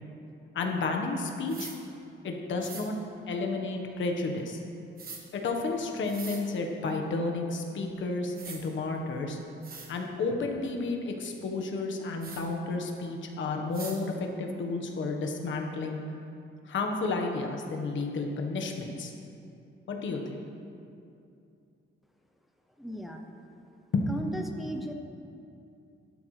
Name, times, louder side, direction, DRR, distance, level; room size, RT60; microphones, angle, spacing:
voice 1, 0.5-1.7 2.2-2.9 3.3-4.6 5.3-9.4 9.9-16.0 16.7-19.1 19.9-20.4 23.9-24.0, left 3 dB, 65° left, 2 dB, 1.3 m, -31 dB
sound 1, 1.5-1.8 2.6-2.9 5.0-5.2 6.0-6.4 7.9-8.0 8.3-8.6 9.2-9.3 9.6-9.9 12.2-12.4 13.7-14.0, right 4 dB, 45° right, 1.4 m, -42 dB
voice 2, 22.8-23.2 24.1-24.9, equal, ahead, 2 dB, 0.6 m, -36 dB
13.0 x 12.5 x 3.3 m, 2.6 s
wide cardioid pair, 170°, 21 cm